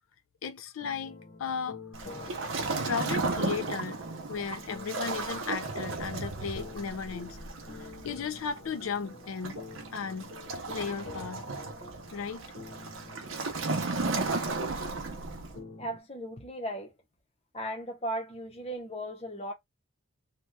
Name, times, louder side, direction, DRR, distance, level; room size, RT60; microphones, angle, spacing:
voice 1, 0.4-1.8 2.8-4.0 4.3-7.4 8.0-9.6 9.9-10.3 10.7-11.4 12.1-12.5, left 6 dB, 85° left, 0.5 m, -35 dB
sound 1, 0.8-16.0, left 3 dB, 55° left, 0.9 m, -47 dB
Waves surf, 1.9-15.6, right 3 dB, 70° right, 0.7 m, -35 dB
voice 2, 15.8-16.9 17.5-19.5, right 1 dB, 30° left, 0.7 m, -36 dB
2.7 x 2.3 x 3.2 m
head